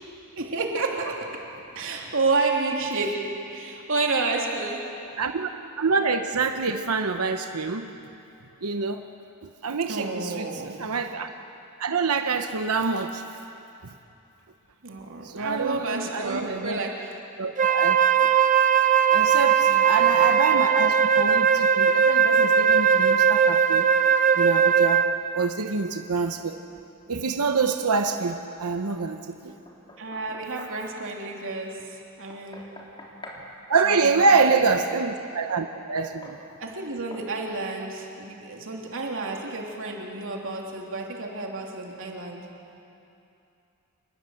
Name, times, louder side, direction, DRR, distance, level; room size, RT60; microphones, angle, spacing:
voice 1, 0.0-5.2 9.9-10.9 14.8-17.3 19.7-20.2 30.0-33.0 33.8-34.4 36.6-42.6, right 3 dB, 65° right, 0 dB, 3.2 m, -30 dB
voice 2, 5.2-5.5 5.8-7.9 8.6-9.0 9.4-11.3 11.8-13.2 15.2-16.8 17.4-18.0 19.1-23.9 24.3-25.0 25.3-26.6 27.1-29.5 33.7-36.4, right 4 dB, 80° right, 6 dB, 1.0 m, -26 dB
Wind instrument woodwind instrument, 17.6-25.2, right 7 dB, 35° right, 0.8 m, -19 dB
Knock, 29.7-30.8 32.3-33.5 35.5-35.7 36.2-36.4 37.1-37.3, left 1 dB, 20° left, 3.4 m, -45 dB
27.0 x 20.5 x 7.9 m, 2.7 s
head